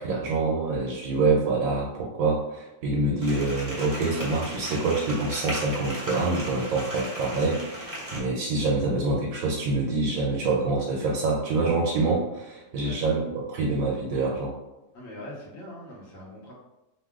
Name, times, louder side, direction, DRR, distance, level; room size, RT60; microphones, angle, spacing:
voice 1, 0.0-14.5, right 3 dB, 85° right, -2 dB, 1.0 m, -26 dB
sound 1, 3.2-8.2, equal, 20° right, 0.7 m, -36 dB
voice 2, 14.9-16.5, left 1 dB, 70° left, -4 dB, 1.2 m, -42 dB
2.8 x 2.1 x 3.4 m, 0.98 s
omnidirectional pair, 1.4 m